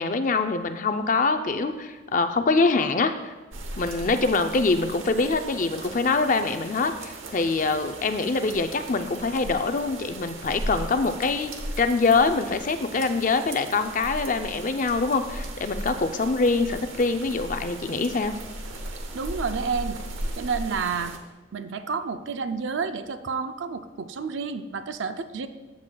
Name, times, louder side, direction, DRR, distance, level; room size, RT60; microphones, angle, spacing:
voice 1, 0.0-3.3 3.8-11.5 11.8-18.3, left 3 dB, 40° left, 8 dB, 0.5 m, -24 dB
sound 1, 3.5-21.2, right 1 dB, 90° right, 1.0 m, -37 dB
voice 2, 19.1-20.0 20.3-21.2 21.5-25.5, right 5 dB, 75° right, 10 dB, 0.5 m, -30 dB
14.5 x 7.4 x 2.3 m, 1.2 s
head